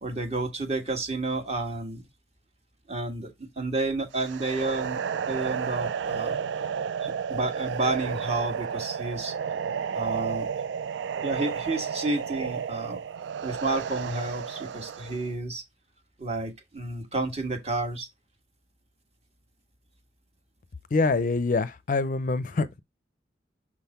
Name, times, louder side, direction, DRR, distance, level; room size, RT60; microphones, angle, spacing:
voice 1, 0.0-2.1 2.9-5.0 5.3-6.4 7.0-9.3 9.9-10.5 11.2-13.0 13.4-15.6 16.2-18.1, right 2 dB, 35° right, 1.6 m, -30 dB
sound 1, 4.1-15.3, right 7 dB, 85° right, 0.4 m, -32 dB
voice 2, 20.9-22.8, left 3 dB, 45° left, 0.5 m, -25 dB
6.1 x 3.8 x 4.2 m
head